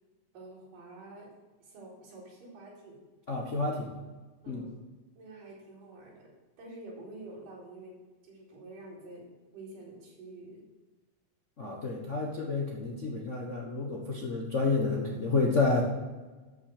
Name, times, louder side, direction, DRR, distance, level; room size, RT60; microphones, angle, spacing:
voice 1, 0.3-1.3 1.6-3.0 4.4-4.7 5.2-8.0 8.2-9.3 9.5-10.6, right 2 dB, 85° right, -6 dB, 6.0 m, -48 dB
voice 2, 3.3-3.9 4.5-4.6 11.6-15.8, left 3 dB, 75° left, -3 dB, 0.6 m, -30 dB
13.0 x 6.4 x 6.7 m, 1.3 s
omnidirectional pair, 3.8 m